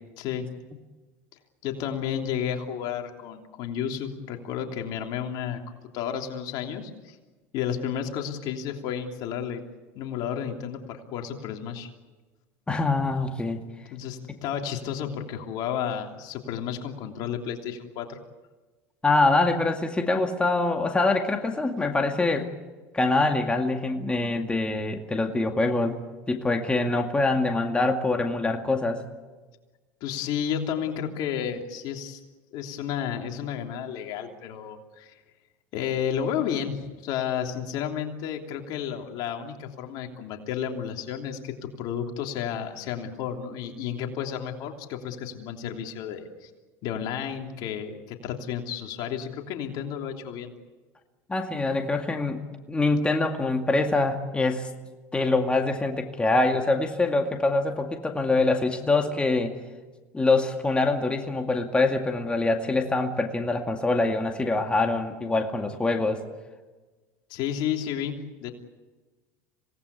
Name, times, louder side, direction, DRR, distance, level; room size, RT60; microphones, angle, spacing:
voice 1, 0.2-0.5 1.6-5.6 5.9-7.2 7.5-9.6 9.9-11.9 13.9-18.2 30.0-32.2 32.5-35.1 35.7-46.5 46.8-50.5 67.3-68.5, left 8 dB, 60° left, 3 dB, 3.1 m, -32 dB
voice 2, 12.7-13.6 19.0-22.5 22.9-26.0 26.3-29.0 51.3-52.4 52.7-54.7 55.1-59.5 60.1-66.2, left 2 dB, 15° left, 4 dB, 2.2 m, -24 dB
26.5 x 18.5 x 8.4 m, 1.3 s
supercardioid pair, 100°, 8 cm